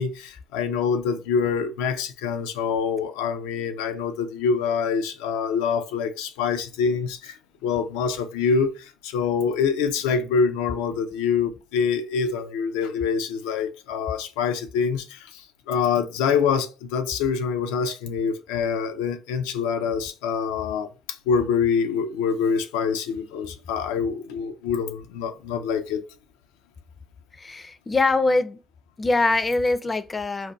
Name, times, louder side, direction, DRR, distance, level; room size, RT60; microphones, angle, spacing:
voice 1, 0.0-7.4 7.6-15.2 15.7-20.9 21.3-26.0, left 6 dB, 85° left, 0.4 m, -25 dB
voice 2, 27.4-28.6 29.0-30.5, left 3 dB, 25° left, 0.4 m, -23 dB
4.0 x 2.2 x 2.3 m
supercardioid pair, 70°, 0 cm